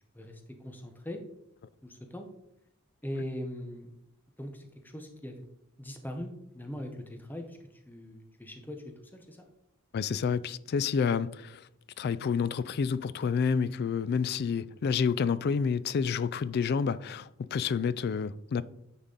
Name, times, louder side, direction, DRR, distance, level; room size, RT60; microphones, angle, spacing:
voice 1, 0.1-1.2 1.8-2.3 3.0-3.9 4.4-5.4 5.8-9.5, left 1 dB, 10° left, 0.7 m, -41 dB
voice 2, 9.9-11.6 12.0-18.6, left 6 dB, 50° left, 0.3 m, -29 dB
9.5 x 4.1 x 3.8 m
head